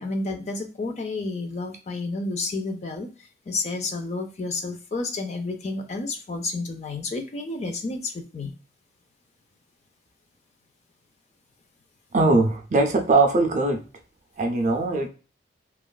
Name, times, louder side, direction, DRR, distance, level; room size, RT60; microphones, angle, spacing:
voice 1, 0.0-3.1 3.5-8.5, left 3 dB, 35° left, 6 dB, 0.4 m, -30 dB
voice 2, 12.1-13.9 14.4-15.1, right 3 dB, 40° right, 4 dB, 0.4 m, -21 dB
2.9 x 2.3 x 2.2 m, 0.35 s
head